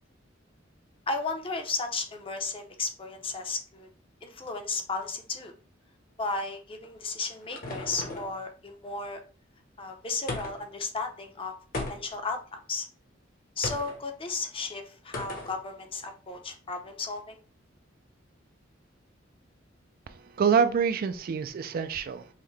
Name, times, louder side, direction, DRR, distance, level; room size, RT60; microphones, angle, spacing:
voice 1, 1.1-3.9 4.2-5.5 6.2-9.2 9.8-11.5 11.9-12.9 13.6-17.4, left 3 dB, 30° left, 5 dB, 0.6 m, -34 dB
sound 1, 6.8-8.4 10.3-10.8 11.7-12.3 13.6-14.0 15.1-15.6, left 2 dB, 45° left, 1.0 m, -36 dB
voice 2, 20.1-22.3, right 6 dB, 50° right, 11 dB, 0.3 m, -26 dB
5.6 x 2.1 x 3.2 m, 0.38 s
head